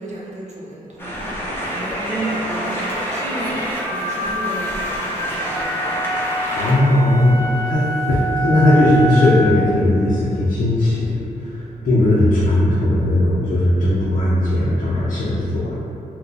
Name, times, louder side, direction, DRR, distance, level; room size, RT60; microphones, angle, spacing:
voice 1, 0.0-6.2, right 2 dB, 50° right, -5 dB, 0.8 m, -32 dB
sound 1, 1.0-6.7, equal, 15° left, 0.8 m, -26 dB
sound 2, 5.4-9.7, right 2 dB, 20° right, 0.5 m, -25 dB
voice 2, 6.5-15.8, left 1 dB, 55° left, -9 dB, 0.6 m, -17 dB
3.7 x 2.3 x 2.7 m, 2.7 s
cardioid pair, 70°, 15 cm